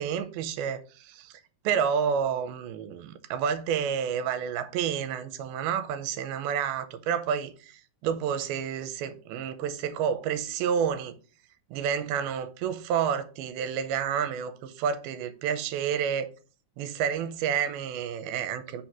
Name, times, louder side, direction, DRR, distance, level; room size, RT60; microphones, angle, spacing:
voice 1, 0.0-11.2 11.7-16.3 16.8-18.8, right 8 dB, 85° right, 2.6 m, -30 dB
5.2 x 4.5 x 5.9 m
omnidirectional pair, 4.3 m